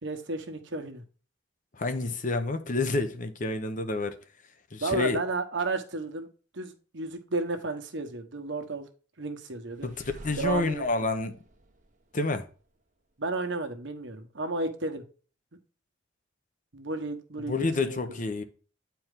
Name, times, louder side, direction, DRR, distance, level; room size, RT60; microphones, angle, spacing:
voice 1, 0.0-1.0 4.8-6.3 6.5-8.9 9.2-9.9 10.3-10.8 13.2-15.0 16.7-18.0, right 3 dB, 70° right, 1.2 m, -32 dB
voice 2, 1.7-4.2 4.7-5.2 9.8-11.3 12.1-12.5 17.5-18.4, left 3 dB, 40° left, 0.8 m, -29 dB
sound 1, 9.7-12.7, right 1 dB, 40° right, 1.2 m, -49 dB
9.3 x 4.7 x 3.7 m
head